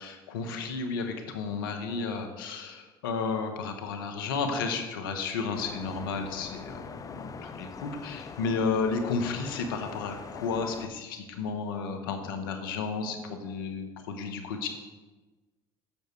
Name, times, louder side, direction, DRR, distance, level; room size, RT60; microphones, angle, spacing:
voice 1, 0.0-14.7, left 4 dB, 90° left, 6 dB, 1.0 m, -32 dB
sound 1, 5.5-10.9, left 5 dB, 30° left, 0.6 m, -43 dB
7.2 x 6.5 x 4.7 m, 1.2 s
hypercardioid pair, 70°, 11 cm